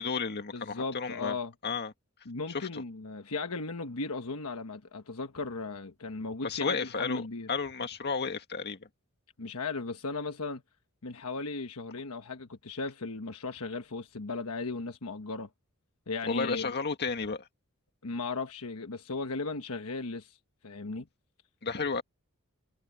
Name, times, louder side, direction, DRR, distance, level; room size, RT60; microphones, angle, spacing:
voice 1, 0.0-1.4 1.6-1.9 2.5-2.8 6.4-7.2 7.5-8.9 16.3-17.5 21.6-22.0, left 4 dB, 50° left, 1.8 m, -32 dB
voice 2, 0.5-1.5 2.2-7.5 9.4-10.6 11.0-15.5 16.1-16.7 18.0-20.4 20.6-21.1, left 3 dB, 70° left, 1.3 m, -36 dB
head